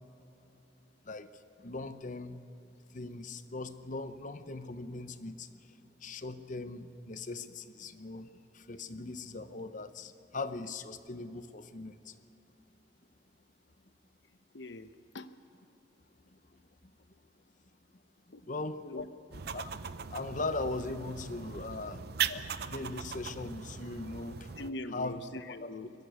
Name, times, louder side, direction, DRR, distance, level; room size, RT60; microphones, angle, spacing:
voice 1, 1.6-2.4 2.9-5.5 6.0-8.3 8.6-12.1 18.5-18.8 19.5-19.7 20.1-22.0 22.6-24.4 24.9-25.2 25.6-25.7, left 3 dB, 45° left, 11 dB, 0.9 m, -39 dB
voice 2, 14.5-15.3 18.3-18.4 18.8-19.4 22.2-22.4 24.6-25.9, left 2 dB, 80° left, 11 dB, 0.9 m, -42 dB
sound 1, 19.3-24.7, right 7 dB, 60° right, 0.6 m, -39 dB
23.0 x 15.0 x 8.3 m, 2.9 s
head